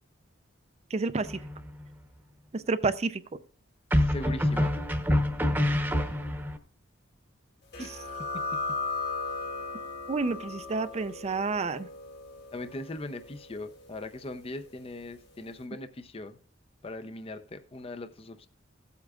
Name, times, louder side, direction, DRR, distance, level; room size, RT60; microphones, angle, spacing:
voice 1, 0.9-1.4 2.5-3.2 10.1-11.9, right 3 dB, 35° right, 0.4 m, -29 dB
sound 1, 1.2-1.8 3.9-6.6, left 1 dB, 10° right, 0.9 m, -26 dB
voice 2, 4.0-4.8 7.8-8.6 12.5-16.4 16.8-18.5, left 2 dB, 30° left, 0.6 m, -40 dB
sound 2, 7.7-15.0, left 3 dB, 60° left, 2.5 m, -37 dB
16.0 x 8.2 x 2.4 m
head